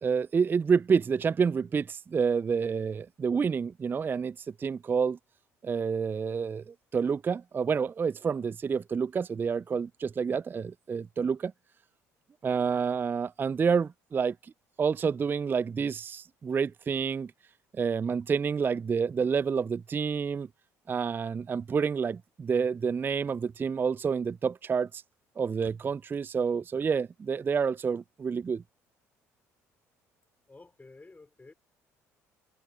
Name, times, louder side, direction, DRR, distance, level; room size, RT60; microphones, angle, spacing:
voice 1, 0.0-5.2 5.6-11.5 12.4-14.5 14.8-17.3 17.7-20.5 20.9-25.0 25.4-28.6, right 6 dB, 25° right, 0.3 m, -28 dB
voice 2, 30.5-31.5, left 3 dB, 20° left, 4.6 m, -52 dB
hypercardioid pair, 55°, 8 cm